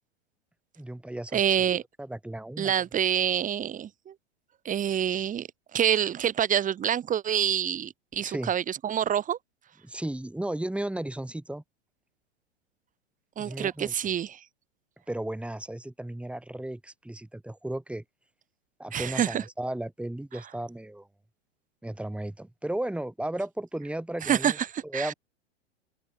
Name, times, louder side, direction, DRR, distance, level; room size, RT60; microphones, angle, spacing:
voice 1, 0.8-1.6 2.0-2.7 8.2-8.5 9.8-11.6 13.4-13.9 15.1-18.0 18.8-21.1 21.8-24.6 24.8-25.1, right 1 dB, 5° right, 3.9 m, -34 dB
voice 2, 1.3-1.8 2.6-4.1 4.7-9.4 13.4-14.4 18.9-19.4 24.2-25.1, right 9 dB, 20° right, 2.0 m, -27 dB
open air
figure-of-eight pair, 95°, 35 cm